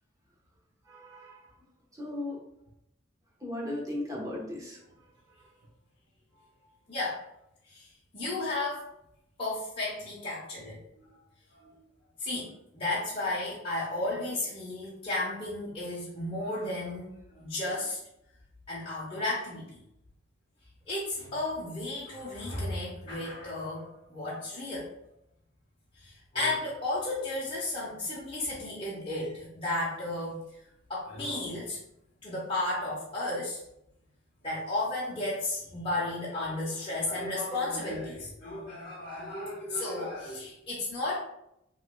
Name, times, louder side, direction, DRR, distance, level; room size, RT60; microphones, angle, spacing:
voice 1, 0.8-1.5 1.9-2.4 3.4-5.1 5.4-5.5, left 1 dB, 15° right, -3 dB, 1.1 m, -37 dB
voice 2, 6.9-7.2 7.7-7.9 8.1-8.8 9.4-10.8 11.5-11.7 12.2-18.0 18.7-19.8 20.9-24.9 26.0-30.4 30.9-31.8 32.2-33.6 34.4-41.1, left 2 dB, 25° left, -7 dB, 0.9 m, -33 dB
5.6 x 3.1 x 2.3 m, 0.80 s
head